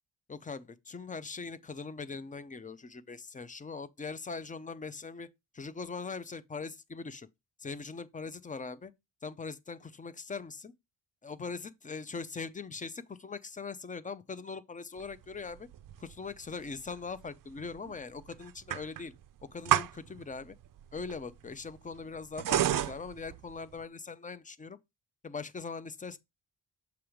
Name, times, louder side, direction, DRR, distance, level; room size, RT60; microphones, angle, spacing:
voice 1, 0.3-5.3 5.5-7.3 7.6-8.9 9.2-10.7 11.2-15.7 16.0-19.1 19.5-20.6 20.9-24.8 25.2-26.2, left 4 dB, 20° left, 0.4 m, -41 dB
sound 1, 15.0-23.9, right 11 dB, 50° right, 0.4 m, -34 dB
7.0 x 3.0 x 4.9 m
wide cardioid pair, 120°, 44 cm